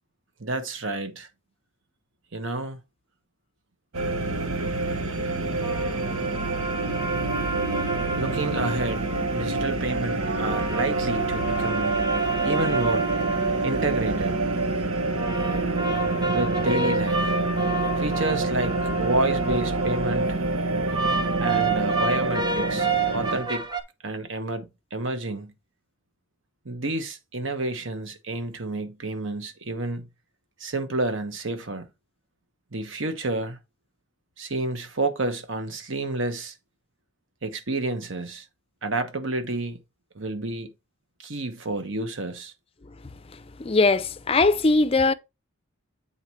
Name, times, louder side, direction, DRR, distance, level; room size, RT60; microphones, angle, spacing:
voice 1, 0.4-1.3 2.3-2.8 8.1-9.0 9.3-11.9 12.4-13.1 13.6-14.3 16.3-17.3 18.0-20.4 21.4-23.7 24.0-24.7 24.9-25.5 26.6-30.1 30.6-31.9 32.7-33.6 34.4-36.5 37.4-38.4 38.8-39.8 40.1-40.7 41.2-42.5, right 2 dB, 65° right, 1.2 m, -29 dB
sound 1, 3.9-23.4, right 2 dB, 90° right, 1.2 m, -26 dB
sound 2, 5.6-9.7 10.2-14.6 15.2-20.3 20.9-23.8, right 4 dB, 20° right, 0.9 m, -31 dB
voice 2, 43.6-45.1, left 3 dB, 25° left, 0.5 m, -20 dB
8.0 x 4.1 x 4.5 m
head